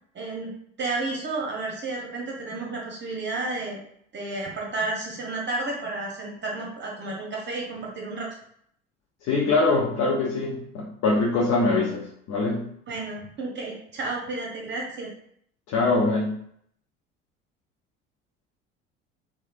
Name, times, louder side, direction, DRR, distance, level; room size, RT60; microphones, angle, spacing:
voice 1, 0.1-3.8 4.1-8.3 12.9-15.1, right 2 dB, 35° right, -1 dB, 0.8 m, -32 dB
voice 2, 9.2-12.7 15.7-16.4, left 3 dB, 55° left, -3 dB, 0.6 m, -23 dB
3.1 x 2.3 x 2.4 m, 0.69 s
hypercardioid pair, 65°, 32 cm